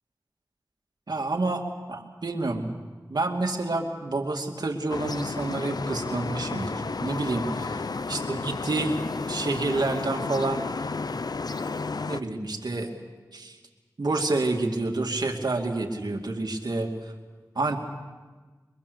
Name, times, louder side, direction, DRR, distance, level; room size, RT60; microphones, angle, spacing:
voice 1, 1.1-1.6 1.9-2.8 3.1-7.8 8.1-9.0 9.3-10.6 12.1-12.9 13.3-13.6 14.0-16.9 17.6-17.8, right 2 dB, 80° right, 3 dB, 2.4 m, -28 dB
sound 1, 4.9-12.2, left 4 dB, 70° left, 0.6 m, -32 dB
23.0 x 22.5 x 6.9 m, 1.3 s
wide cardioid pair, 45°, 7 cm